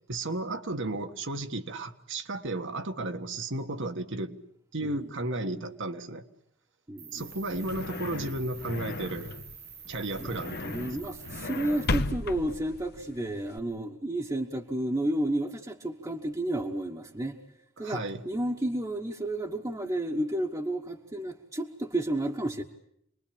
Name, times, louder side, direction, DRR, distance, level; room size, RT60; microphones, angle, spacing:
voice 1, 0.1-4.4 4.7-6.3 7.1-9.3 9.9-11.2 17.8-18.2, right 2 dB, 60° right, 1.5 m, -34 dB
voice 2, 6.9-7.3 10.2-17.4 17.8-22.6, right 1 dB, 15° right, 1.2 m, -32 dB
Cricket, 7.0-12.0, right 8 dB, 90° right, 4.6 m, -48 dB
sound 1, 7.2-13.6, left 2 dB, 50° left, 1.0 m, -36 dB
28.0 x 21.0 x 8.6 m
head